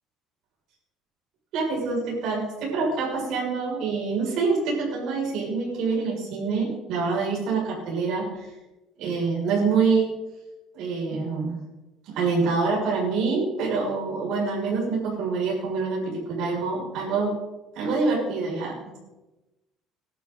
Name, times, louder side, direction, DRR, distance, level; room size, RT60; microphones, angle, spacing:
voice 1, 1.5-8.3 9.0-10.1 10.7-11.5 12.1-17.3 17.7-18.7, right 4 dB, 65° right, -3 dB, 6.6 m, -26 dB
19.0 x 11.5 x 4.1 m, 1.1 s
cardioid pair, 140°, 0 cm